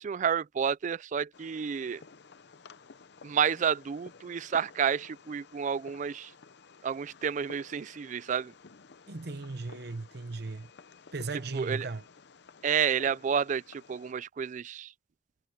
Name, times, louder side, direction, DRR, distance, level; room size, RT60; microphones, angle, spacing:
voice 1, 0.0-2.0 3.2-6.3 6.8-8.5 11.5-11.9 12.6-14.9, right 7 dB, 40° right, 0.3 m, -30 dB
Fireworks, 1.3-14.1, left 4 dB, 65° left, 0.7 m, -54 dB
voice 2, 9.1-10.7 11.1-12.0, right 3 dB, 60° right, 0.9 m, -37 dB
head